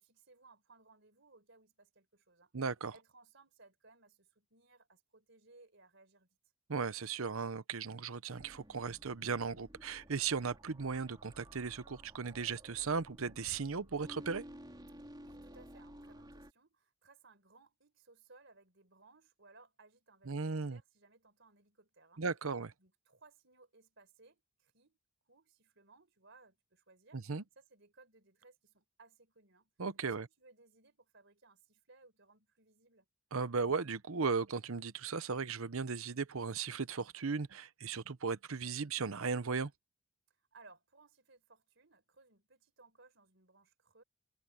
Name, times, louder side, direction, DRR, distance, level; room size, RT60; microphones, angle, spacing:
voice 1, 0.0-2.5 2.9-6.4 14.9-22.2 22.8-25.0 25.3-27.2 27.6-29.7 30.0-33.1 40.3-44.0, right 3 dB, 55° right, 4.5 m, -63 dB
voice 2, 2.5-2.9 6.7-14.4 20.3-20.8 22.2-22.7 27.1-27.4 29.8-30.3 33.3-39.7, right 5 dB, 75° right, 0.8 m, -36 dB
sound 1, 8.4-16.5, equal, 20° right, 3.8 m, -54 dB
head